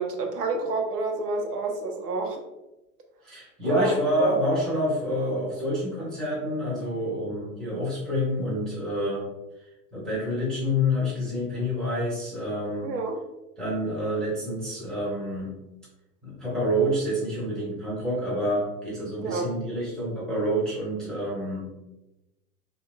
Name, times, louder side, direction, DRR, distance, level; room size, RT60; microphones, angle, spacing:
voice 1, 0.0-2.4 3.6-4.3 12.8-13.2 19.2-19.5, right 3 dB, 75° right, 3 dB, 0.7 m, -28 dB
voice 2, 3.2-9.2 9.9-12.9 13.6-15.5 16.2-21.7, equal, ahead, -8 dB, 0.4 m, -28 dB
2.8 x 2.1 x 2.3 m, 0.98 s
figure-of-eight pair, 95°, 48 cm